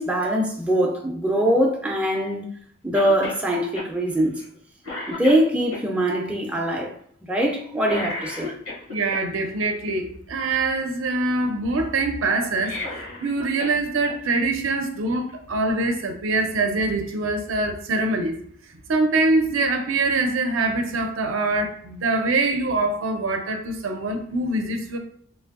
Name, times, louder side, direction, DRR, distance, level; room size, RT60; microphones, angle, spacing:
voice 1, 0.0-2.4 2.8-4.4 5.1-6.9 7.2-8.5, right 1 dB, 5° right, 0.4 m, -22 dB
Cough, 2.9-3.4 3.8-3.9 4.4-4.6 4.8-5.8 7.8-9.2 12.5-13.8 14.1-14.2 15.3-15.4, left 2 dB, 75° left, 1.0 m, -33 dB
voice 2, 8.9-12.8 13.2-18.4 18.9-25.0, right 2 dB, 65° right, 0.5 m, -24 dB
3.2 x 2.6 x 2.4 m
head